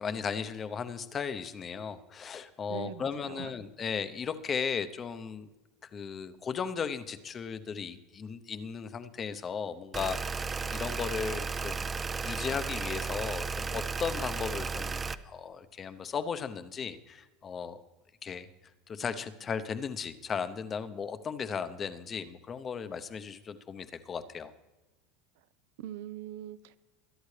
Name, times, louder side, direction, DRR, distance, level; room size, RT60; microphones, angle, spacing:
voice 1, 0.0-5.5 5.9-11.9 12.2-17.8 18.2-18.5 18.9-24.5, left 6 dB, 25° left, 0.8 m, -36 dB
voice 2, 2.7-3.5 25.8-26.8, right 11 dB, 75° right, 0.6 m, -41 dB
sound 1, 9.9-15.1, right 4 dB, 15° right, 0.5 m, -34 dB
21.5 x 11.0 x 3.3 m
supercardioid pair, 145°, 0 cm